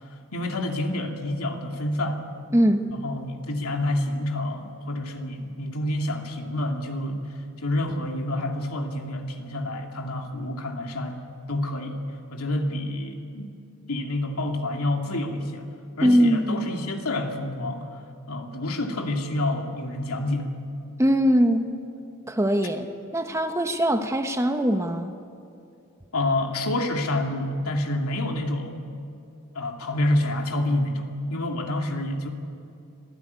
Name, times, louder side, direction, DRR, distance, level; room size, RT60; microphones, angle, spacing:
voice 1, 0.3-2.2 2.9-7.2 7.6-11.2 11.5-12.0 12.3-13.5 13.9-15.7 16.0-17.9 18.3-20.5 26.1-28.9 29.5-32.3, left 1 dB, 85° left, 2 dB, 2.6 m, -28 dB
voice 2, 2.5-2.8 16.0-16.6 21.0-21.7 22.3-22.9 23.1-25.1, equal, 15° right, 6 dB, 1.0 m, -21 dB
25.5 x 16.0 x 9.6 m, 2.5 s
head